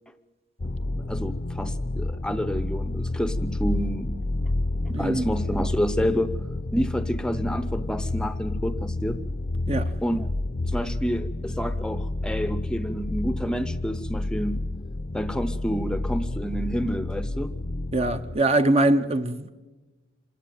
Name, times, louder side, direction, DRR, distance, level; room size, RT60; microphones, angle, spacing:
sound 1, 0.6-18.4, left 2 dB, 40° left, 0.7 m, -30 dB
voice 1, 0.8-4.1 5.0-6.3 6.7-9.2 10.0-10.3 10.7-14.6 15.1-17.5, equal, 5° left, 0.7 m, -29 dB
voice 2, 4.9-5.3 9.7-9.9 17.9-19.5, right 2 dB, 30° right, 0.8 m, -22 dB
26.0 x 17.0 x 9.2 m
head